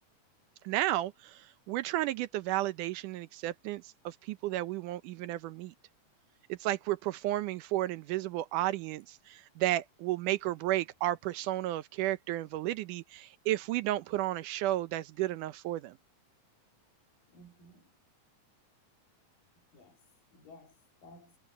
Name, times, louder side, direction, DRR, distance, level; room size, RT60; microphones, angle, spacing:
voice 1, 0.6-5.7 6.5-16.0, right 15 dB, 75° right, 2.2 m, -33 dB
voice 2, 17.3-17.9 19.6-21.4, left 1 dB, 80° left, 5.7 m, -57 dB
omnidirectional pair, 3.9 m